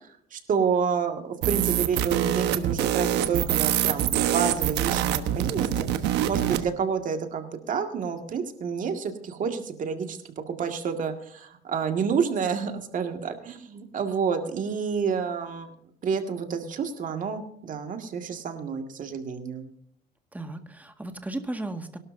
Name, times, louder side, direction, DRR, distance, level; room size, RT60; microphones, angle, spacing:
voice 1, 0.3-5.9 6.3-10.2 10.5-15.7 16.0-19.7, right 6 dB, 50° right, 5 dB, 2.0 m, -29 dB
sound 1, 1.4-6.6, right 11 dB, 80° right, 1.2 m, -25 dB
voice 2, 6.4-6.7 20.3-22.0, right 2 dB, 10° right, 6 dB, 1.8 m, -35 dB
23.5 x 12.0 x 2.7 m, 0.65 s
cardioid pair, 110°, 17 cm